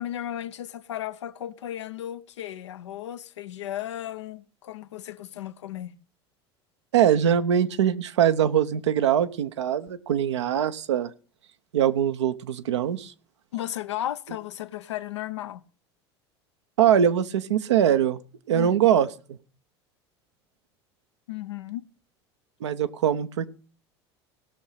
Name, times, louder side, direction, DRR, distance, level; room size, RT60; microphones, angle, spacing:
voice 1, 0.0-6.0 13.5-15.6 18.5-18.8 21.3-21.8, left 12 dB, 85° left, 0.7 m, -35 dB
voice 2, 6.9-11.1 11.7-13.1 16.8-18.2 18.5-19.4 22.6-23.5, right 9 dB, 85° right, 0.8 m, -22 dB
18.0 x 6.4 x 5.7 m
hypercardioid pair, 80°, 14 cm